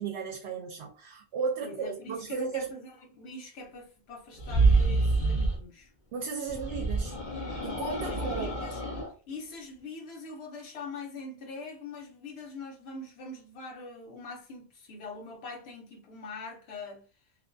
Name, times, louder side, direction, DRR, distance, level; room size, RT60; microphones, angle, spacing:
voice 1, 0.0-2.7 6.1-7.2 7.6-8.7, right 5 dB, 75° right, 0.8 m, -34 dB
voice 2, 1.6-5.9 8.1-8.8 9.3-17.0, left 3 dB, 70° left, 1.0 m, -43 dB
sound 1, 4.4-5.6 6.5-9.1, right 3 dB, 50° left, 0.7 m, -27 dB
2.5 x 2.5 x 2.2 m
omnidirectional pair, 1.1 m